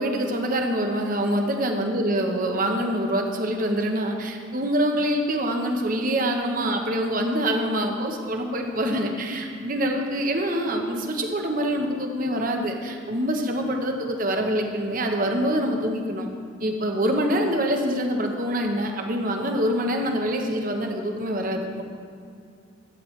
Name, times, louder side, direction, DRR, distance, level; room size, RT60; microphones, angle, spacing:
voice 1, 0.0-16.3 16.6-21.8, equal, 45° right, 3 dB, 0.9 m, -25 dB
11.5 x 9.1 x 3.2 m, 2.3 s
head